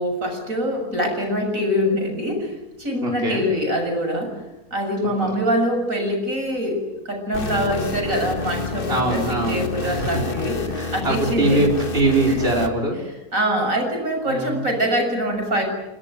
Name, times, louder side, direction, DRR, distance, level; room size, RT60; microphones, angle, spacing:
voice 1, 0.0-2.5 2.8-4.3 4.7-11.7 12.3-12.4 13.3-15.6, equal, 60° right, 3 dB, 7.5 m, -24 dB
voice 2, 3.0-3.4 5.2-5.3 8.9-10.2 10.7-13.0 14.3-14.6, right 2 dB, 40° right, -1 dB, 5.6 m, -22 dB
sound 1, 7.3-12.7, left 3 dB, 35° left, 1.8 m, -29 dB
29.0 x 19.5 x 9.4 m, 1.0 s
omnidirectional pair, 1.6 m